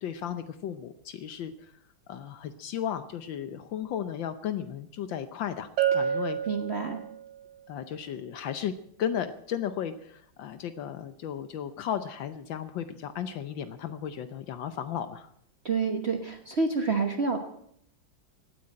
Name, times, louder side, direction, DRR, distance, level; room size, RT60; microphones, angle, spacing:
voice 1, 0.0-1.5 2.1-5.7 5.9-6.4 7.7-8.7 9.0-15.3, left 9 dB, 75° left, 11 dB, 1.5 m, -34 dB
Bell, 5.8-7.4, right 9 dB, 80° right, 1.8 m, -29 dB
voice 2, 6.5-7.0 15.6-17.4, right 4 dB, 40° right, 5 dB, 1.3 m, -28 dB
16.5 x 9.4 x 8.7 m, 0.70 s
omnidirectional pair, 2.1 m